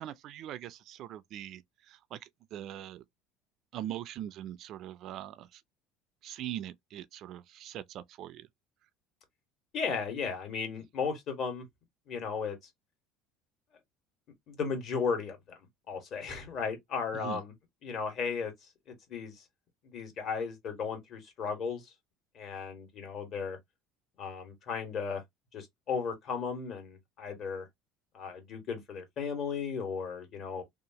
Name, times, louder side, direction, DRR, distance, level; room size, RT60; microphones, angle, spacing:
voice 1, 0.0-3.0 3.7-5.6 6.2-8.5 17.1-17.4, right 12 dB, 55° right, 0.3 m, -42 dB
voice 2, 9.7-11.7 12.1-12.6 14.5-15.6 15.9-17.5 17.8-18.5 18.9-19.4 19.9-21.8 22.3-23.6 24.2-25.2 25.5-27.7 28.1-30.6, left 5 dB, 50° left, 1.4 m, -35 dB
2.8 x 2.4 x 2.7 m
supercardioid pair, 115°, 0 cm